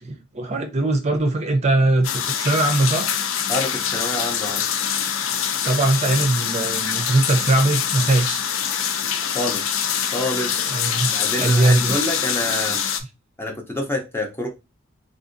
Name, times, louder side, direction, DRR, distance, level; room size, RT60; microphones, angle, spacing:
voice 1, 0.0-3.1 5.6-8.4 8.8-8.9 10.7-11.1 11.4-12.1, right 2 dB, 35° right, 0.5 m, -20 dB
sound 1, 2.0-13.0, left 8 dB, 75° left, 0.4 m, -24 dB
voice 2, 3.5-4.6 9.2-10.8 11.1-12.9 13.4-14.5, left 1 dB, 10° left, 0.5 m, -28 dB
3.6 x 2.6 x 2.5 m
head